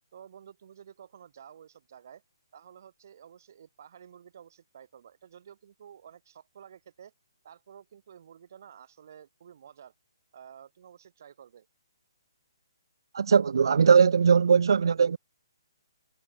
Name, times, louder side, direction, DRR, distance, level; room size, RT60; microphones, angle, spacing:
voice 1, 0.1-2.2 2.5-7.1 7.4-9.9 10.3-11.7, right 8 dB, 40° right, 4.4 m, -51 dB
voice 2, 13.1-15.2, right 6 dB, 65° right, 0.3 m, -20 dB
hypercardioid pair, 175°, 2 cm